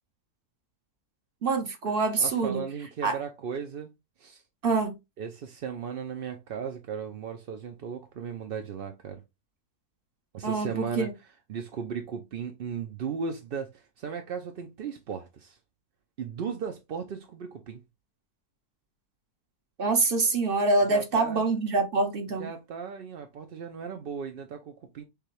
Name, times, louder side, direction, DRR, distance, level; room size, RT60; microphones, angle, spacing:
voice 1, 1.4-2.6 3.0-3.2 4.6-5.0 10.4-11.1 19.8-22.5, right 3 dB, 40° right, 1.0 m, -25 dB
voice 2, 2.2-3.9 4.2-4.4 5.2-9.2 10.3-11.1 11.5-15.6 16.2-17.8 20.9-21.4 22.4-25.0, right 6 dB, 65° right, 0.5 m, -36 dB
6.6 x 2.3 x 3.2 m
omnidirectional pair, 1.6 m